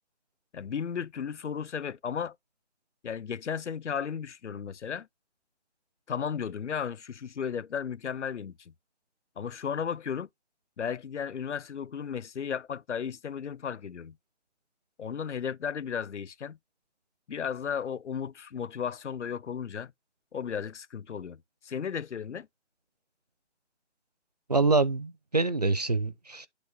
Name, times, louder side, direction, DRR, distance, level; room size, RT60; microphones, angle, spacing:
voice 1, 0.5-2.4 3.0-5.1 6.1-8.7 9.4-10.3 10.8-14.2 15.0-16.6 17.3-19.9 20.3-22.5, left 7 dB, 75° left, 0.6 m, -34 dB
voice 2, 24.5-26.5, right 3 dB, 35° right, 0.4 m, -25 dB
8.3 x 2.9 x 6.2 m
figure-of-eight pair, 150°, 35 cm